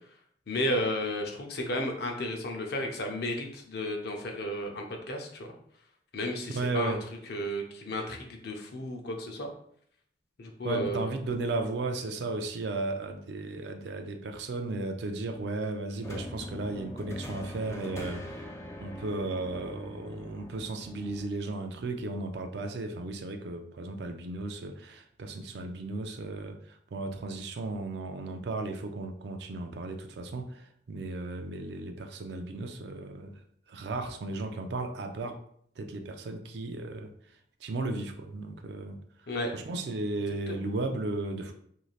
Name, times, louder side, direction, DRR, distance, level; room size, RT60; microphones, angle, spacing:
voice 1, 0.5-5.5 6.1-7.0 7.3-9.5 10.4-11.2 39.3-39.5 40.5-40.6, left 1 dB, 60° left, 2 dB, 0.6 m, -33 dB
voice 2, 6.5-7.0 10.6-18.5 18.8-33.4 33.7-35.4 35.8-37.1 37.6-39.0 39.5-41.5, right 2 dB, 60° right, 6 dB, 0.4 m, -35 dB
sound 1, 16.0-21.3, left 1 dB, 15° left, 0.3 m, -42 dB
3.2 x 2.6 x 2.3 m, 0.65 s
head